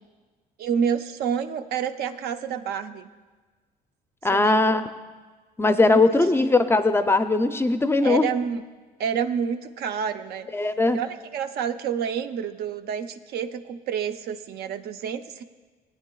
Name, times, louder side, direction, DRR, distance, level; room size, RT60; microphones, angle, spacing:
voice 1, 0.6-3.1 4.3-4.6 5.8-6.0 8.0-8.6 9.0-10.5 10.9-15.4, right 7 dB, 70° right, 9 dB, 0.5 m, -28 dB
voice 2, 4.2-4.9 5.6-8.3 10.5-11.0, left 2 dB, 15° left, 9 dB, 0.4 m, -20 dB
18.0 x 9.2 x 2.3 m, 1.4 s
cardioid pair, 110°, 17 cm